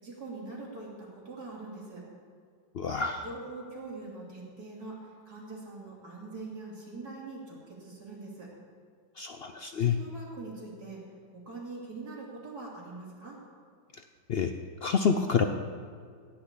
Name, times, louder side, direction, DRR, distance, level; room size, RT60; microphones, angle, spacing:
voice 1, 0.0-2.0 3.2-8.5 9.8-11.0 11.3-13.4, right 3 dB, 65° right, -4 dB, 3.7 m, -43 dB
voice 2, 2.8-3.2 9.2-9.9 14.3-14.5 14.8-15.4, left 6 dB, 75° left, 7 dB, 0.5 m, -27 dB
16.5 x 5.9 x 8.4 m, 2.1 s
omnidirectional pair, 1.8 m